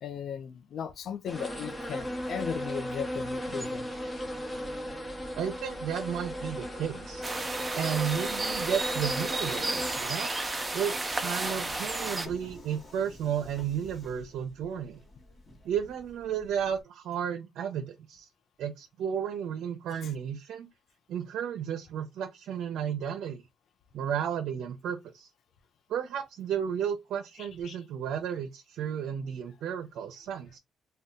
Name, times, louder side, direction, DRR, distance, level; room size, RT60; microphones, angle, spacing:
voice 1, 0.0-3.9 20.0-20.1 27.4-27.8, left 8 dB, 65° left, 0.5 m, -37 dB
sound 1, 1.3-10.0, equal, 15° left, 0.8 m, -36 dB
voice 2, 5.3-7.3 7.7-10.3 10.7-15.0 15.6-18.3 18.6-20.7 21.1-23.4 23.9-25.3 25.9-30.6, right 8 dB, 80° right, 0.5 m, -33 dB
sound 2, 7.2-12.3, right 2 dB, 20° right, 0.6 m, -32 dB
Subway metro underground, 8.1-16.8, left 1 dB, 35° left, 1.2 m, -52 dB
2.7 x 2.2 x 3.5 m
cardioid pair, 90°, 0 cm